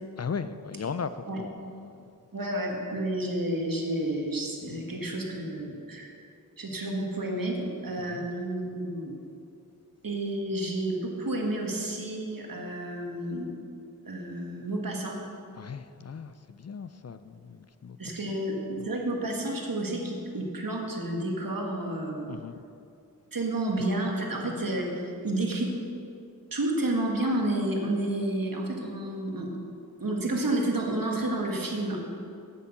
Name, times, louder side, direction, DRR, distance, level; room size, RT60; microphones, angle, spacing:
voice 1, 0.2-2.1 4.7-4.9 8.0-8.3 15.6-18.2 22.3-22.6, left 5 dB, 45° left, 12 dB, 0.4 m, -38 dB
voice 2, 2.3-6.1 6.6-9.1 10.0-13.5 14.1-15.2 18.0-22.3 23.3-25.7 26.5-29.5 30.0-32.0, right 1 dB, 65° right, 0 dB, 1.6 m, -30 dB
8.3 x 8.2 x 6.0 m, 2.6 s
wide cardioid pair, 60°, 36 cm